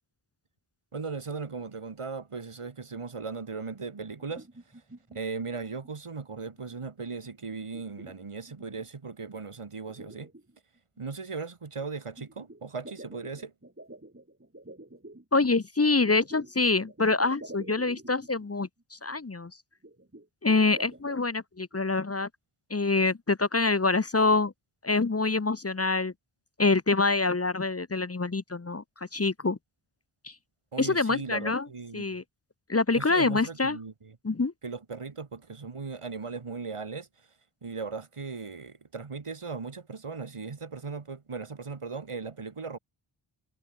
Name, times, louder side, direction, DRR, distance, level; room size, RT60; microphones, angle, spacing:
voice 1, 0.9-4.5 5.1-10.3 11.0-13.5 30.7-32.2 32.9-34.2 34.6-37.1 37.6-42.8, right 4 dB, 90° right, 3.5 m, -38 dB
sound 1, 4.3-5.2 5.6-6.0 6.4-6.9 7.2-8.9 9.3-9.4 9.8-11.0 12.2-15.2 16.1-18.5 18.8-18.9 19.1-19.2 19.8-21.2, right 1 dB, 25° right, 5.6 m, -48 dB
voice 2, 15.3-19.5 20.4-22.3 22.7-24.5 24.8-26.1 26.6-28.8 29.1-29.6 30.2-30.3 30.8-31.7 31.9-32.2 32.7-33.8 34.2-34.5, left 3 dB, 30° left, 0.8 m, -25 dB
wide cardioid pair, 65°, 50 cm